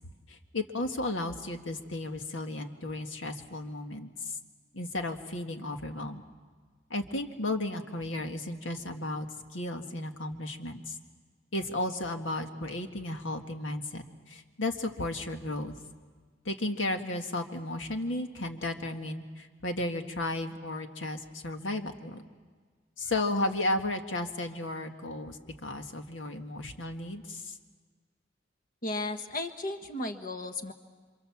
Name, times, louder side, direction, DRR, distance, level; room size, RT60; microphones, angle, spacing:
voice 1, 0.3-4.4 4.7-6.2 6.9-9.3 9.5-11.0 11.5-15.8 16.5-22.2 23.0-27.6, left 2 dB, 80° left, 5 dB, 1.8 m, -34 dB
voice 2, 28.8-30.7, left 2 dB, 45° left, 7 dB, 1.4 m, -34 dB
28.5 x 26.0 x 7.3 m, 1.5 s
head